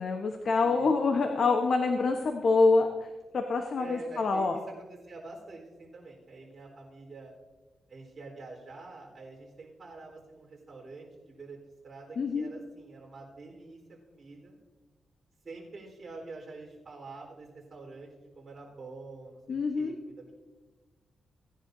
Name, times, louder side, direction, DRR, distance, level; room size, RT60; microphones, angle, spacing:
voice 1, 0.0-2.9 3.3-4.6 12.2-12.5 19.5-19.9, left 4 dB, 60° left, 4 dB, 0.9 m, -26 dB
voice 2, 0.6-1.0 3.8-7.3 7.9-11.6 11.8-13.8 14.1-14.6 15.4-20.3, right 3 dB, 45° right, -2 dB, 4.0 m, -46 dB
17.5 x 10.5 x 2.7 m, 1.3 s
cardioid pair, 85°, 0 cm